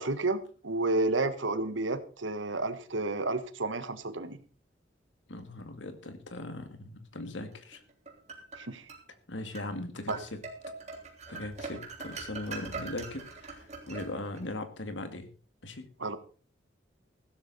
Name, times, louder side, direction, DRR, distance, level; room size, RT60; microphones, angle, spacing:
voice 1, 0.0-4.4 8.6-8.8 10.1-10.2 16.0-16.2, right 2 dB, 80° right, 12 dB, 1.4 m, -31 dB
voice 2, 5.3-7.8 9.3-10.4 11.3-15.3 15.6-15.9, left 2 dB, 75° left, 8 dB, 2.2 m, -39 dB
sound 1, 7.7-9.0 9.5-9.7 10.1-14.5, right 4 dB, 35° right, 3.4 m, -42 dB
15.5 x 12.5 x 4.2 m, 0.38 s
head